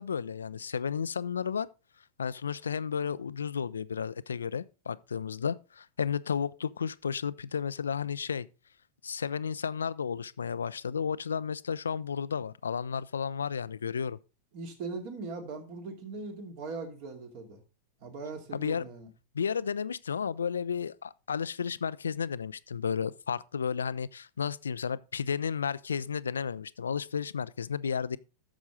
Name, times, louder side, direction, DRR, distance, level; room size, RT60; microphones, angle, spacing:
voice 1, 0.0-1.7 2.2-8.5 9.0-14.2 18.5-18.9 19.3-28.2, left 6 dB, 70° left, 0.4 m, -33 dB
voice 2, 14.5-17.6 18.0-19.1, right 3 dB, 45° right, 2.4 m, -40 dB
10.0 x 7.2 x 3.6 m
figure-of-eight pair, 90°, 0 cm